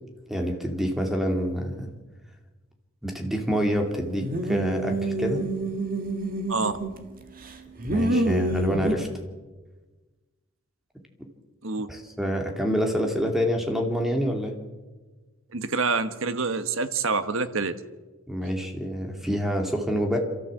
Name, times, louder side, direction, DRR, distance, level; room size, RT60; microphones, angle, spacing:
voice 1, 0.3-1.9 3.0-5.4 7.9-9.1 11.2-11.3 11.9-14.6 18.3-20.2, equal, ahead, 3 dB, 2.5 m, -27 dB
sound 1, 4.2-7.0 7.4-9.0, right 1 dB, 40° right, 2.0 m, -27 dB
voice 2, 6.5-6.8 11.6-11.9 15.5-17.8, right 4 dB, 65° right, 11 dB, 1.3 m, -26 dB
27.0 x 13.5 x 7.6 m, 1.3 s
head